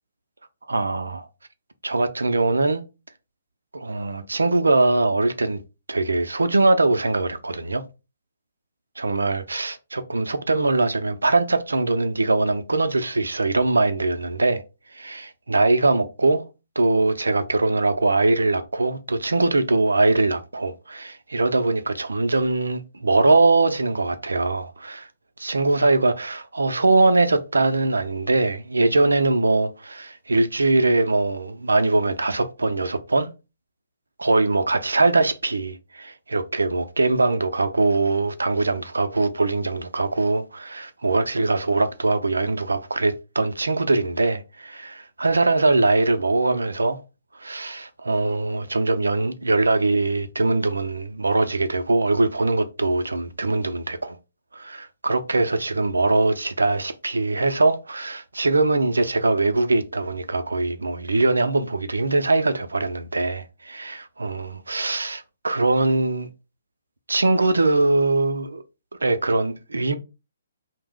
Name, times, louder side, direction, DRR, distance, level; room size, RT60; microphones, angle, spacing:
voice 1, 0.7-1.3 1.8-2.8 3.7-5.6 5.9-7.8 9.0-14.6 14.9-16.4 16.8-25.1 25.4-33.3 34.2-47.0 47.4-54.2 54.5-66.3 67.1-68.6 69.0-69.9, right 2 dB, 75° right, 0.4 m, -22 dB
2.7 x 2.0 x 3.6 m
figure-of-eight pair, 130°, 0 cm